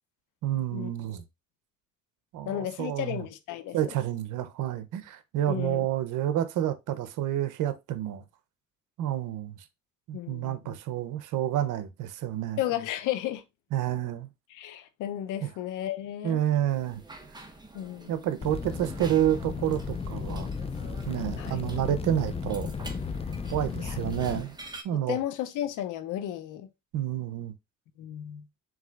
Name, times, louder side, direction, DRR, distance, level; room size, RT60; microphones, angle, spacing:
voice 1, 0.4-1.2 2.3-3.2 3.7-8.2 9.0-9.6 10.1-12.6 13.7-14.3 15.4-15.5 16.2-17.0 18.1-20.5 21.1-22.7 23.5-24.6 24.8-25.2 26.9-27.5, right 11 dB, 85° right, 0.7 m, -29 dB
voice 2, 2.5-3.8 5.5-5.9 10.1-10.8 12.6-13.4 14.5-16.4 17.7-18.3 21.4-21.6 23.8-24.0 24.9-26.7 28.0-28.4, left 12 dB, 90° left, 0.7 m, -33 dB
sound 1, 16.7-24.8, right 2 dB, 15° right, 0.9 m, -47 dB
sound 2, 18.4-24.4, left 5 dB, 20° left, 0.4 m, -35 dB
4.8 x 3.9 x 2.3 m
cardioid pair, 90°, 30 cm